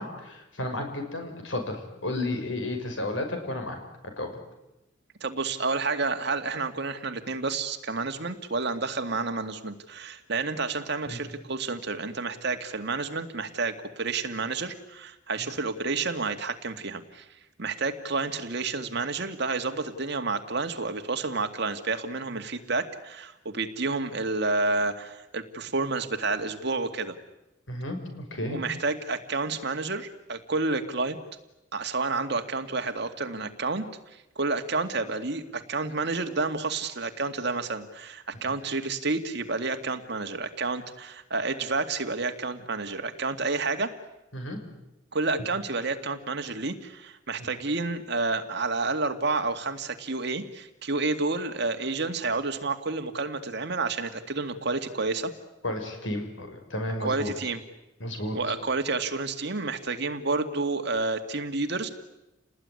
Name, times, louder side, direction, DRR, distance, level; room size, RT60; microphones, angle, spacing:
voice 1, 0.0-4.3 11.0-11.2 27.7-28.6 44.3-44.6 47.4-47.5 55.6-57.3 58.0-58.4, left 1 dB, 80° left, 5 dB, 6.3 m, -33 dB
voice 2, 5.2-17.3 17.6-27.2 28.5-31.2 31.7-33.9 34.1-43.9 45.1-55.3 57.0-57.6 58.3-61.9, right 3 dB, 60° right, 7 dB, 2.2 m, -30 dB
30.0 x 19.5 x 9.8 m, 0.96 s
head